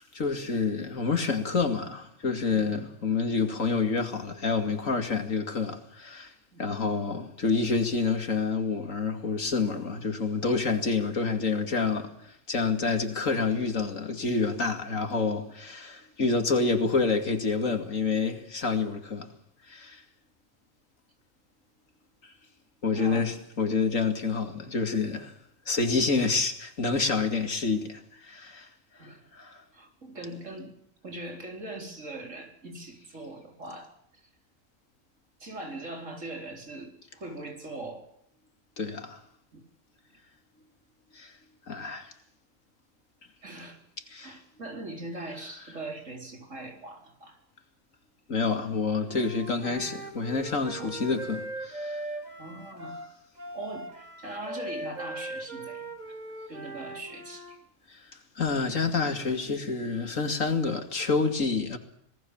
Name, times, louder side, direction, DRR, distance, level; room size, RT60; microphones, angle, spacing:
voice 1, 0.1-6.3 6.6-12.1 12.5-19.3 19.7-20.0 22.8-25.3 25.7-28.7 29.4-29.6 38.8-39.2 41.2-41.3 41.7-42.1 44.1-44.3 48.3-52.0 58.4-61.8, left 4 dB, 80° left, 2.9 m, -28 dB
voice 2, 22.9-23.3 29.0-29.2 29.7-30.7 31.0-34.3 35.4-38.1 39.5-39.6 43.4-43.8 44.2-47.4 50.8-50.9 52.4-52.9 53.5-56.2 56.5-57.6, right 2 dB, 70° right, 4.5 m, -41 dB
Wind instrument woodwind instrument, 49.1-57.6, right 1 dB, 30° right, 2.7 m, -39 dB
26.5 x 19.0 x 7.3 m
omnidirectional pair, 1.3 m